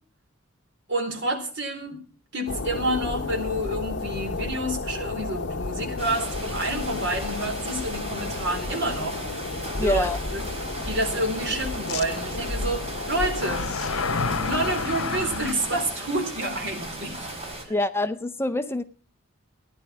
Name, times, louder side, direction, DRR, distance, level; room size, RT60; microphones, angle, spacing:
voice 1, 0.9-2.0 2.3-9.2 9.8-10.1 10.3-10.4 10.8-13.7 14.3-17.7, right 1 dB, 60° right, 3.9 m, -29 dB
sound 1, 2.5-14.9, left 3 dB, 55° left, 1.0 m, -32 dB
sound 2, 6.0-17.6, right 1 dB, 30° right, 4.5 m, -37 dB
sound 3, 6.6-6.7 7.3-7.4 11.9-12.0 13.3-15.5, left 5 dB, 85° left, 0.9 m, -29 dB
voice 2, 9.8-10.2 17.7-18.8, left 1 dB, 10° left, 0.6 m, -25 dB
15.5 x 10.5 x 6.0 m
head